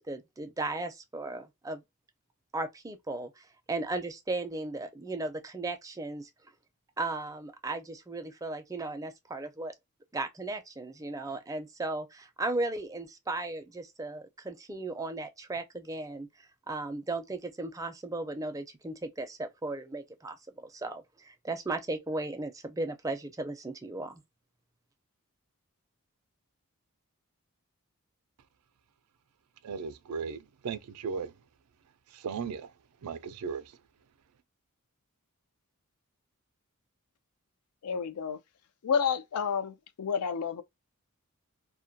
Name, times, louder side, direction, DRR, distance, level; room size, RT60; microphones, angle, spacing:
voice 1, 0.0-1.8 2.5-6.3 7.0-9.7 10.1-16.3 16.7-24.2, right 2 dB, 15° right, 0.4 m, -36 dB
voice 2, 29.6-30.4 30.6-31.3 32.2-32.6 33.0-33.6, right 5 dB, 90° right, 0.4 m, -35 dB
voice 3, 37.8-38.4 38.8-40.6, left 6 dB, 90° left, 0.4 m, -30 dB
2.2 x 2.2 x 2.5 m
head